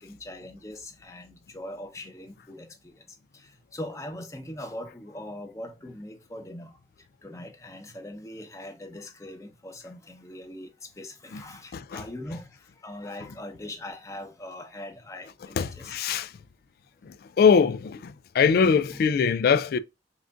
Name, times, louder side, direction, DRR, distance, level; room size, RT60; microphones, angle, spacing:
voice 1, 0.0-2.9 3.7-6.7 7.2-10.7 11.0-12.5 12.8-15.9 18.9-19.1, left 1 dB, 20° left, 0.8 m, -41 dB
voice 2, 11.7-12.0 15.6-16.3 17.0-19.8, left 6 dB, 60° left, 0.3 m, -22 dB
5.8 x 2.5 x 2.4 m
head